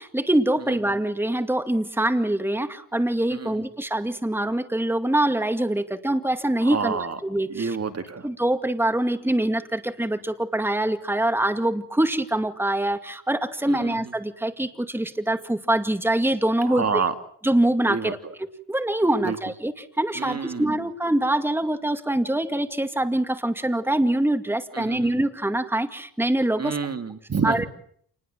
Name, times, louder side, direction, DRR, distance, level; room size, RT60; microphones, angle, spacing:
voice 1, 0.0-7.8 8.2-17.0 17.4-26.8 27.4-27.7, right 1 dB, 5° right, 8 dB, 2.2 m, -24 dB
voice 2, 6.6-7.2 7.5-8.3 13.7-14.0 16.6-17.1 17.9-18.1 19.2-19.4 20.2-20.8 24.7-25.1 26.6-27.7, right 5 dB, 40° right, 8 dB, 2.3 m, -28 dB
28.5 x 20.5 x 7.6 m, 0.63 s
cardioid pair, 100°, 39 cm